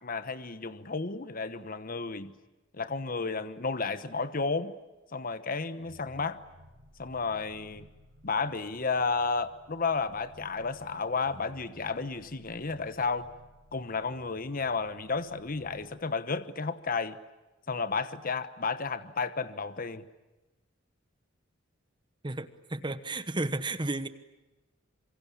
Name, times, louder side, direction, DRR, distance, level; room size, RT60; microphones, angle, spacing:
voice 1, 0.0-2.3 2.8-4.7 5.1-6.4 7.0-7.9 8.2-13.3 13.7-17.2 17.7-20.0, left 4 dB, 45° left, 12 dB, 1.1 m, -32 dB
sound 1, 5.8-15.9, equal, 80° right, 7.3 m, -57 dB
voice 2, 22.2-24.1, right 2 dB, 25° right, 12 dB, 1.1 m, -33 dB
27.0 x 24.0 x 8.6 m, 1.1 s
head